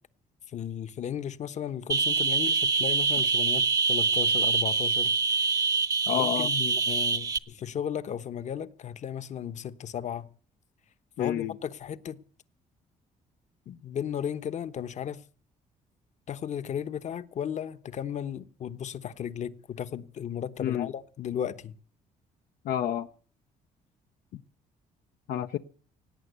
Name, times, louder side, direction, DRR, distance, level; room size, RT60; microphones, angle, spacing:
voice 1, 0.5-5.4 6.1-10.3 11.2-12.2 13.7-15.2 16.3-21.7, left 9 dB, 50° left, 1.0 m, -35 dB
sound 1, 1.9-7.4, right 4 dB, 25° right, 0.9 m, -25 dB
voice 2, 6.1-6.5 11.2-11.5 20.6-20.9 22.6-23.1 24.3-24.4 25.3-25.6, left 11 dB, 80° left, 0.7 m, -29 dB
18.0 x 8.7 x 8.1 m
cardioid pair, 105°, 15 cm